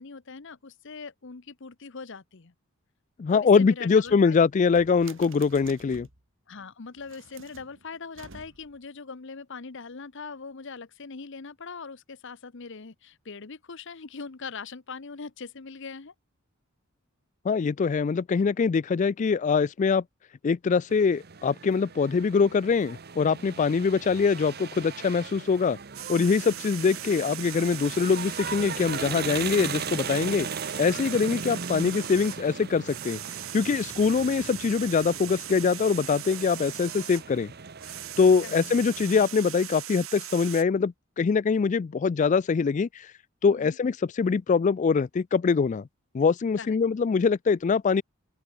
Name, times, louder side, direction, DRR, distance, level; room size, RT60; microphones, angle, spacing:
voice 1, 0.0-2.5 3.3-4.3 6.5-16.1 31.1-31.3 38.4-38.6 43.5-43.8 46.6-46.8, left 4 dB, 60° left, 0.9 m, -41 dB
voice 2, 3.2-6.1 17.4-20.0 20.4-25.8 26.1-30.5 30.8-33.2 33.5-37.5 38.2-43.1 43.4-45.9 46.1-48.0, left 5 dB, 35° left, 0.3 m, -23 dB
sound 1, 3.9-6.2 6.9-8.9, right 4 dB, 65° right, 4.3 m, -51 dB
sound 2, 20.9-39.3, right 6 dB, 50° right, 1.0 m, -38 dB
sound 3, 25.9-37.3 37.6-40.6, right 13 dB, 80° right, 3.0 m, -40 dB
open air
head